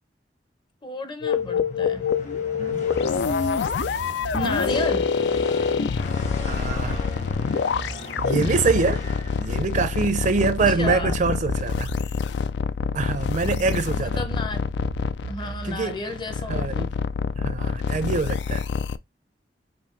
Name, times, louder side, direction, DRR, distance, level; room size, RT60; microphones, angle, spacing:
voice 1, 0.8-2.1 4.3-5.1 10.8-11.1 13.6-14.6 15.3-16.9, left 1 dB, 25° left, 0.7 m, -32 dB
sound 1, 1.2-19.0, left 6 dB, 70° left, 0.4 m, -26 dB
sound 2, 1.3-10.0, left 2 dB, 45° left, 1.1 m, -38 dB
sound 3, 3.8-5.1 6.2-9.9 10.8-12.1 12.8-16.7, right 3 dB, 90° right, 0.6 m, -37 dB
voice 2, 6.4-7.1 8.2-9.0 9.4-11.9 12.9-14.2 15.6-15.9 16.5-16.9 17.4-18.6, right 4 dB, 45° right, 0.5 m, -25 dB
5.1 x 2.7 x 3.1 m
head